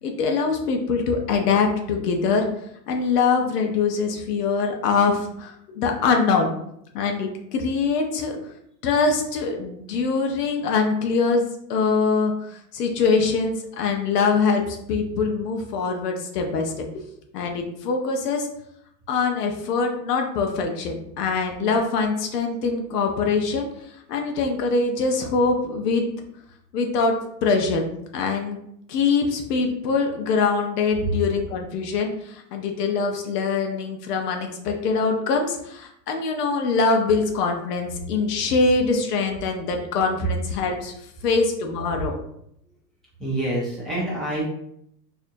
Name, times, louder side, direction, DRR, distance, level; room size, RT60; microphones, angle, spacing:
voice 1, 0.0-2.5 2.9-6.5 6.9-8.4 8.8-11.4 11.7-17.0 17.3-18.5 19.1-26.0 26.7-27.8 28.1-28.6 28.9-40.9 41.2-42.2, left 4 dB, 70° left, 3 dB, 0.8 m, -23 dB
voice 2, 43.2-44.4, right 1 dB, ahead, -9 dB, 0.5 m, -26 dB
4.3 x 2.8 x 2.6 m, 0.74 s
supercardioid pair, 165°, 49 cm